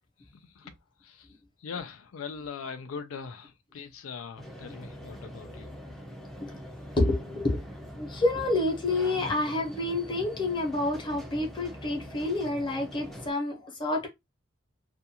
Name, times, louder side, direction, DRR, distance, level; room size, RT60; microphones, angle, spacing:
voice 1, 1.6-5.7, left 5 dB, 85° left, 0.4 m, -40 dB
sound 1, 4.4-13.3, equal, ahead, 0.4 m, -43 dB
voice 2, 7.0-7.6 8.0-14.1, left 2 dB, 25° left, 0.8 m, -28 dB
2.5 x 2.2 x 2.8 m
head